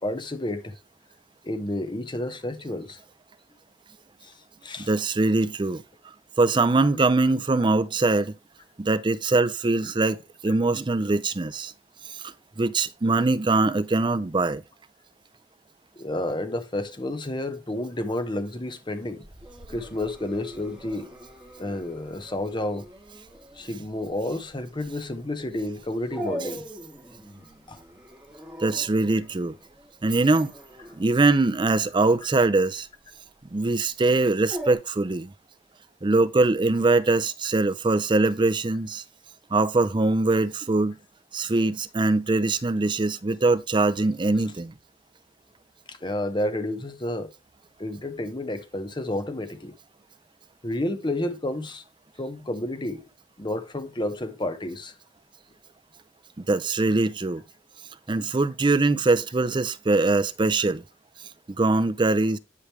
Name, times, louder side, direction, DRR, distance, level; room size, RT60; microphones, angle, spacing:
voice 1, 0.0-0.8 1.4-3.0 4.2-4.9 16.0-19.3 19.7-21.1 21.6-22.9 23.5-26.7 27.7-27.8 45.9-47.3 47.8-49.7 50.6-51.8 52.2-53.0 53.4-54.9, left 1 dB, 25° left, 1.0 m, -30 dB
voice 2, 4.9-5.8 6.4-8.4 8.8-11.7 12.1-14.6 28.6-29.6 30.0-30.5 30.9-32.9 33.5-35.3 36.0-39.0 39.5-41.0 41.3-44.7 56.4-57.4 58.1-60.8 61.6-62.4, right 3 dB, 25° right, 0.5 m, -22 dB
Dog, 19.2-34.7, equal, 5° right, 3.4 m, -42 dB
11.0 x 5.0 x 3.2 m
head